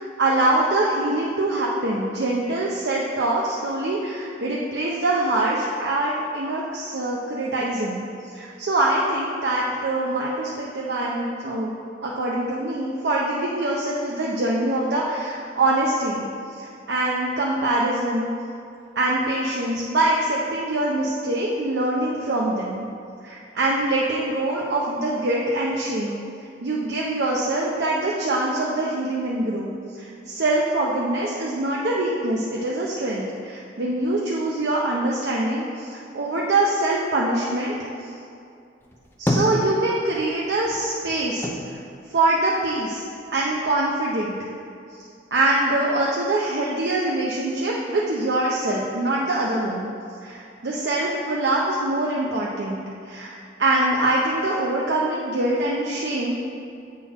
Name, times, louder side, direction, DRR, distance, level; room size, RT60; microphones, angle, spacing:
voice 1, 0.0-8.0 8.3-11.7 12.0-18.3 19.0-22.9 23.2-26.2 26.6-29.7 30.0-37.8 39.2-41.8 42.1-43.1 43.3-44.3 45.3-49.9 50.2-56.3, right 2 dB, 65° right, -4 dB, 0.6 m, -24 dB
sound 1, 38.8-40.3 40.6-43.0 43.4-44.3, left 1 dB, 10° left, 0.5 m, -29 dB
8.2 x 3.8 x 4.3 m, 2.5 s
head